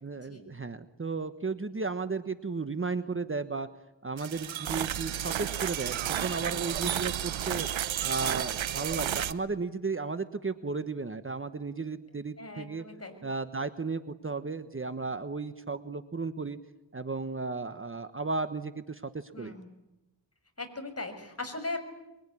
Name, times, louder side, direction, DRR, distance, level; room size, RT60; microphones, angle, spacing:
voice 1, 0.0-3.7 4.0-7.7 8.0-12.8 13.2-16.6 16.9-19.6, right 4 dB, 30° right, 10 dB, 1.3 m, -34 dB
sound 1, 4.2-9.3, right 10 dB, 90° right, 1.0 m, -32 dB
voice 2, 12.4-13.2 19.3-19.7 20.6-21.9, left 2 dB, 30° left, 6 dB, 6.2 m, -39 dB
24.0 x 23.5 x 9.9 m, 0.99 s
cardioid pair, 70°, 45 cm